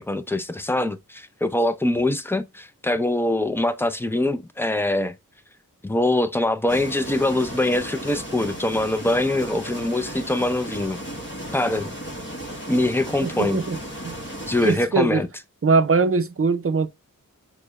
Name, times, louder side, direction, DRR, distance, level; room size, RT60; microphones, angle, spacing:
voice 1, 0.0-5.1 5.8-11.0 11.5-11.9 12.7-13.6 14.5-15.3, left 1 dB, 5° left, 0.4 m, -23 dB
sound 1, 6.7-14.8, equal, 35° left, 1.1 m, -35 dB
voice 2, 13.2-13.8 14.0-14.1 14.6-15.2 15.6-16.9, right 4 dB, 45° right, 0.5 m, -21 dB
6.4 x 2.2 x 2.3 m
wide cardioid pair, 55°, 33 cm